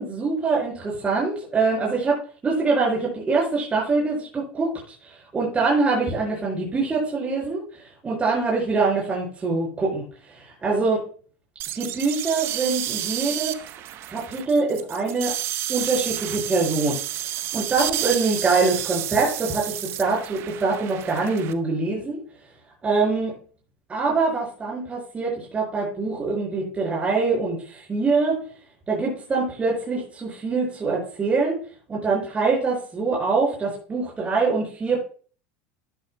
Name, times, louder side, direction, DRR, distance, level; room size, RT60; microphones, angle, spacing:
voice 1, 0.0-2.2 2.4-5.0 5.3-7.6 8.0-11.0 11.8-13.5 14.1-15.3 15.7-17.0 17.5-22.2 22.8-23.4 23.9-28.4 28.9-31.6 31.9-35.0, right 4 dB, 20° right, -3 dB, 5.5 m, -24 dB
sound 1, 11.6-21.5, right 13 dB, 50° right, 0.9 m, -31 dB
12.0 x 11.5 x 2.2 m, 0.41 s
supercardioid pair, 105°, 6 cm